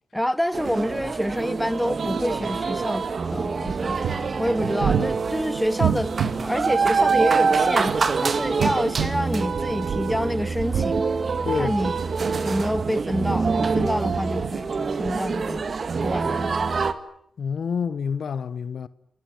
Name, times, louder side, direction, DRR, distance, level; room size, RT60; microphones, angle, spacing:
voice 1, 0.1-4.0 4.4-6.1 6.4-7.9 8.2-11.0 11.5-12.0 12.4-15.7 16.0-16.7, equal, 5° left, 1.6 m, -27 dB
sound 1, 0.5-16.9, right 5 dB, 55° right, 2.1 m, -25 dB
sound 2, 3.6-6.4 7.7-10.3 10.6-12.7 13.2-14.7 15.0-15.1, right 7 dB, 80° right, 1.6 m, -29 dB
voice 2, 17.4-18.9, left 6 dB, 70° left, 1.0 m, -27 dB
27.5 x 20.5 x 9.3 m
supercardioid pair, 45°, 0 cm